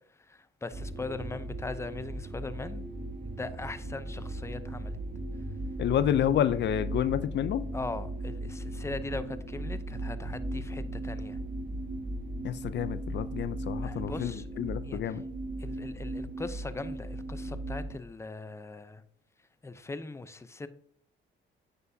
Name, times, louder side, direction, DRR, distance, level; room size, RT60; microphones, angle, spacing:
voice 1, 0.3-2.8 3.2-5.0 7.7-11.4 13.8-14.5 14.8-15.2 15.6-19.0 19.6-20.7, left 3 dB, 15° left, 0.7 m, -40 dB
sound 1, 0.7-18.0, right 1 dB, 50° right, 1.8 m, -37 dB
voice 2, 5.8-7.6 12.4-14.3 14.6-15.2, left 10 dB, 65° left, 0.5 m, -29 dB
9.6 x 8.0 x 2.8 m
cardioid pair, 90°, 20 cm